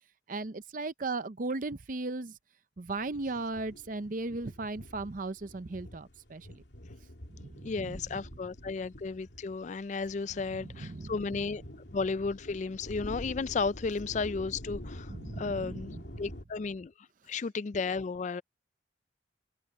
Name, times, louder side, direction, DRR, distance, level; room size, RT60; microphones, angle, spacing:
voice 1, 0.3-2.4 2.8-6.6 7.3-8.0 10.6-11.2 15.1-16.2, right 3 dB, 45° right, 0.6 m, -37 dB
sound 1, 2.9-16.4, left 1 dB, 65° left, 2.8 m, -47 dB
voice 2, 7.6-11.6 11.9-18.4, left 4 dB, 40° left, 0.3 m, -34 dB
open air
head